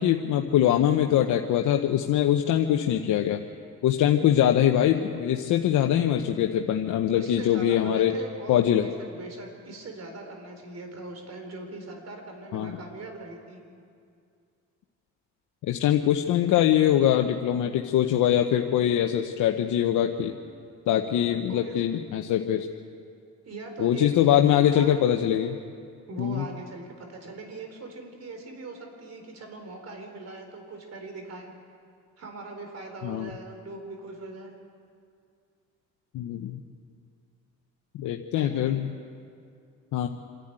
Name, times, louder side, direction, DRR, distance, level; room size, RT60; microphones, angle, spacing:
voice 1, 0.0-3.4 3.8-8.1 8.5-8.9 12.5-12.8 15.6-20.3 20.9-22.7 23.8-25.6 26.2-26.4 33.0-33.3 36.1-36.6 37.9-38.9 39.9-40.1, left 11 dB, 80° left, 4 dB, 0.9 m, -23 dB
voice 2, 7.1-13.6 21.5-21.8 23.4-24.9 26.1-31.5 32.2-34.5 38.3-38.8, right 3 dB, 55° right, 3 dB, 4.2 m, -41 dB
27.0 x 11.5 x 9.0 m, 2.3 s
cardioid pair, 90°, 30 cm